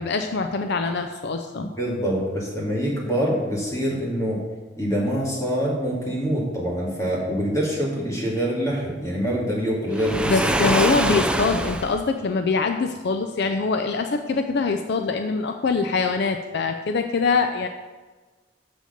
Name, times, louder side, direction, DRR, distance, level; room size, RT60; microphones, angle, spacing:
voice 1, 0.0-1.7 10.2-17.7, left 4 dB, 60° left, 6 dB, 0.5 m, -23 dB
voice 2, 1.6-4.4 4.8-10.3, equal, 15° left, -4 dB, 2.4 m, -25 dB
Waves surf, 9.9-12.0, right 1 dB, 5° right, 0.4 m, -24 dB
6.8 x 6.4 x 6.6 m, 1.3 s
head